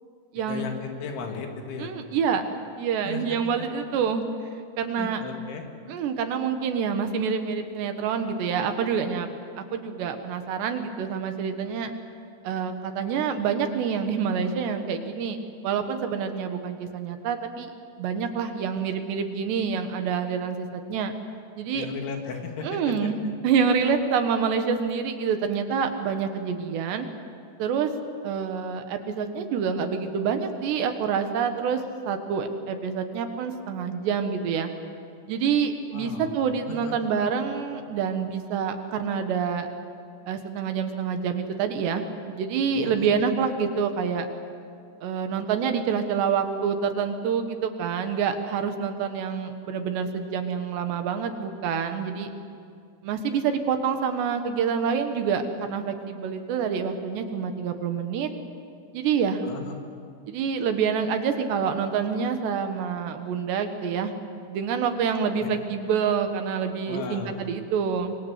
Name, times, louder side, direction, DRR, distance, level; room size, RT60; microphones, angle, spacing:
voice 1, 0.5-1.9 3.0-3.2 3.6-3.7 5.0-5.6 21.7-23.1 35.9-36.3 36.6-36.9 42.7-43.1 59.4-59.8 65.4-65.5 66.9-67.4, left 5 dB, 75° left, 3 dB, 4.8 m, -36 dB
voice 2, 1.8-2.4 2.8-4.2 4.8-5.2 5.9-9.3 9.7-11.9 12.4-15.4 15.6-17.7 18.0-21.1 21.6-21.9 22.6-27.1 27.6-27.9 28.2-34.7 35.3-39.7 40.3-44.3 45.0-52.3 53.0-58.3 58.9-59.4 60.3-64.1 64.5-68.2, right 6 dB, 70° right, 7 dB, 3.4 m, -27 dB
26.5 x 24.0 x 8.2 m, 2.4 s
omnidirectional pair, 5.4 m